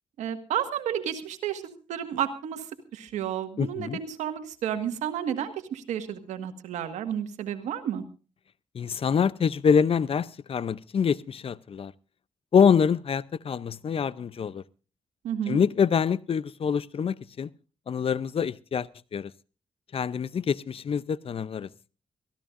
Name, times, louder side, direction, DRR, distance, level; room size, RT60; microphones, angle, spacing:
voice 1, 0.2-2.6 2.9-8.0 15.2-15.6, right 9 dB, 90° right, 1.8 m, -31 dB
voice 2, 3.6-4.0 8.7-11.9 12.5-14.6 15.5-17.5 17.9-19.3 19.9-21.7, left 6 dB, 55° left, 0.6 m, -25 dB
23.5 x 15.5 x 2.6 m
cardioid pair, 60°, 12 cm